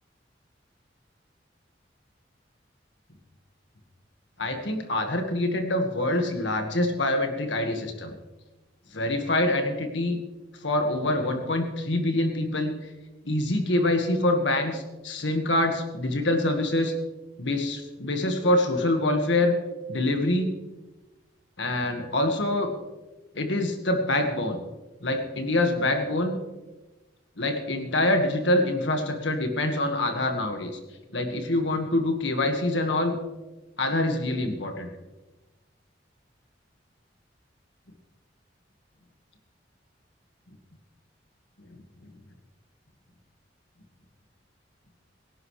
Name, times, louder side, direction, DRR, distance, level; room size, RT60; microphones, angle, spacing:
voice 1, 4.4-8.1 8.9-10.2 10.6-12.7 13.2-16.9 17.4-19.6 19.9-20.5 21.6-22.7 23.3-24.6 25.0-26.4 27.4-30.8 31.1-33.1 33.8-34.9, left 1 dB, 75° left, 4 dB, 1.7 m, -25 dB
24.0 x 11.0 x 3.3 m, 1.1 s
head